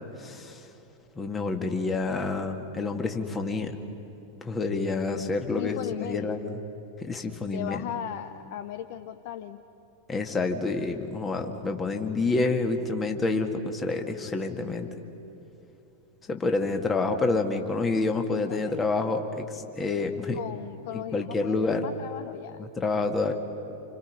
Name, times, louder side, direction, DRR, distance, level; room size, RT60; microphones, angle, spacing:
voice 1, 0.2-0.6 1.2-3.8 4.4-6.6 7.0-7.8 10.1-14.9 16.3-20.4 20.9-21.9 22.6-23.3, left 3 dB, 20° left, 5 dB, 2.0 m, -28 dB
voice 2, 5.6-6.3 7.5-9.6 18.4-18.7 20.3-22.6, left 11 dB, 50° left, 12 dB, 0.7 m, -37 dB
29.5 x 27.5 x 5.6 m, 3.0 s
figure-of-eight pair, 90°, 0 cm